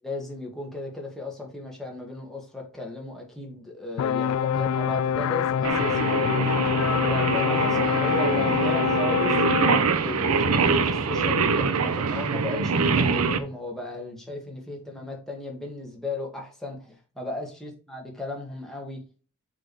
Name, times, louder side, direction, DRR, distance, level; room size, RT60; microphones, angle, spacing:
voice 1, 0.0-6.6 6.9-9.4 9.9-19.0, left 2 dB, ahead, 1.8 m, -35 dB
sound 1, 4.0-9.8, left 8 dB, 75° left, 0.3 m, -25 dB
Singing, 5.6-13.4, right 5 dB, 85° right, 0.7 m, -24 dB
6.3 x 4.3 x 4.7 m
head